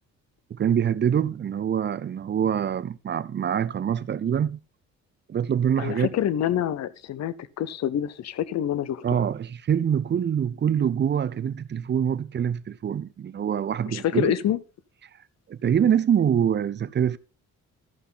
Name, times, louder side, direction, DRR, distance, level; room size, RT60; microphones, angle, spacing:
voice 1, 0.5-4.6 5.3-6.1 9.0-14.3 15.5-17.2, right 8 dB, 35° right, 0.6 m, -25 dB
voice 2, 5.8-9.0 13.9-14.6, left 10 dB, 60° left, 0.7 m, -26 dB
13.5 x 5.7 x 4.0 m
cardioid pair, 90°, 30 cm